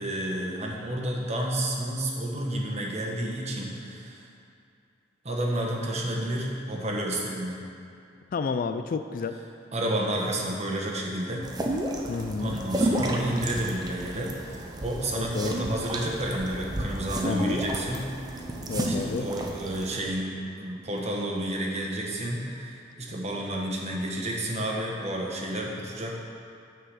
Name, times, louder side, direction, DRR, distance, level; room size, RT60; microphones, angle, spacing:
voice 1, 0.0-4.2 5.2-7.7 9.7-11.5 12.4-18.0 18.4-18.5 18.8-26.1, right 1 dB, 35° right, -1 dB, 1.2 m, -30 dB
voice 2, 8.3-9.4 12.1-12.6 15.1-15.6 17.2-17.6 18.7-19.3, left 4 dB, 50° left, 9 dB, 0.3 m, -30 dB
sound 1, 11.4-20.0, right 1 dB, 20° right, 0.7 m, -32 dB
9.7 x 4.6 x 6.4 m, 2.5 s
head